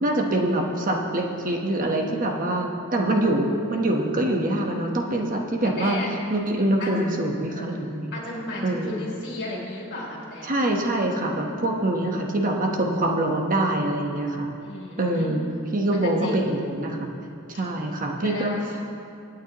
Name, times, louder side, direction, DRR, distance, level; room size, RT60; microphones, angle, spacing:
voice 1, 0.0-6.0 6.3-8.1 8.6-9.0 10.4-14.5 15.0-17.1 17.5-18.5, right 1 dB, 40° right, 1 dB, 1.2 m, -24 dB
voice 2, 5.6-6.1 6.8-6.9 7.5-7.8 8.1-10.5 14.6-15.4 15.9-16.4 17.5-17.6 18.2-18.6, left 2 dB, 55° left, -3 dB, 3.4 m, -34 dB
25.0 x 9.0 x 3.0 m, 2.7 s
head